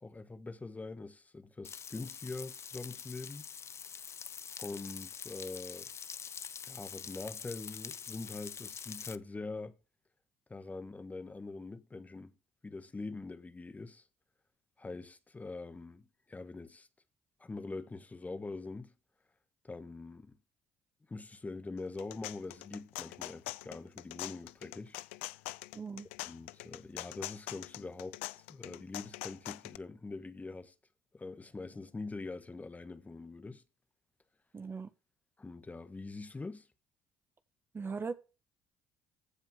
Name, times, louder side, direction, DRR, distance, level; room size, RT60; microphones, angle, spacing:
voice 1, 0.0-3.5 4.6-5.9 6.7-9.8 10.5-12.3 12.6-14.1 14.8-16.9 17.4-18.9 19.6-20.4 21.1-25.0 26.3-30.7 31.1-33.6 35.4-36.7, left 3 dB, 20° left, 1.4 m, -44 dB
Frying (food), 1.6-9.2, left 7 dB, 45° left, 0.6 m, -45 dB
sound 1, 21.8-29.8, left 19 dB, 85° left, 0.4 m, -43 dB
voice 2, 25.7-26.1 34.5-34.9 37.7-38.1, right 5 dB, 35° right, 1.4 m, -39 dB
15.0 x 5.2 x 3.5 m
hypercardioid pair, 55°, 7 cm